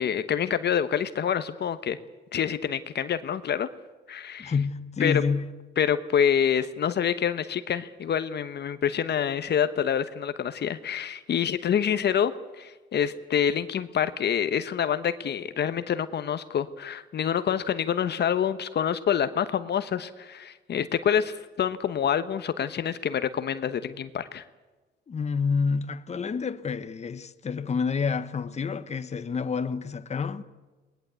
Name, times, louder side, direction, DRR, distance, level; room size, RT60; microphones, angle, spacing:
voice 1, 0.0-2.0 2.3-3.7 4.1-4.5 5.0-5.2 5.8-24.4, left 8 dB, 60° left, 1.1 m, -27 dB
voice 2, 4.4-5.5 25.1-30.4, left 5 dB, 35° left, 1.2 m, -28 dB
21.0 x 20.0 x 8.2 m
cardioid pair, 90°, 20 cm